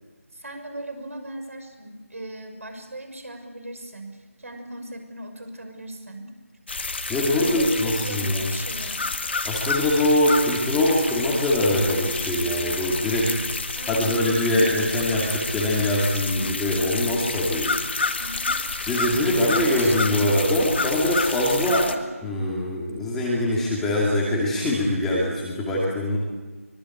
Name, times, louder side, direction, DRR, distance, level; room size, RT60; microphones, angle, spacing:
voice 1, 0.3-6.3 7.1-9.1 13.7-14.6 18.2-18.5 19.2-20.2 21.8-22.1, right 1 dB, 65° right, 7 dB, 6.2 m, -38 dB
sound 1, 6.7-21.9, left 3 dB, 45° left, 2.1 m, -29 dB
voice 2, 7.1-8.5 9.4-13.3 13.9-17.8 18.8-21.9 22.2-26.2, left 1 dB, 5° left, -5 dB, 2.4 m, -23 dB
25.0 x 23.0 x 8.5 m, 1.3 s
figure-of-eight pair, 170°, 8 cm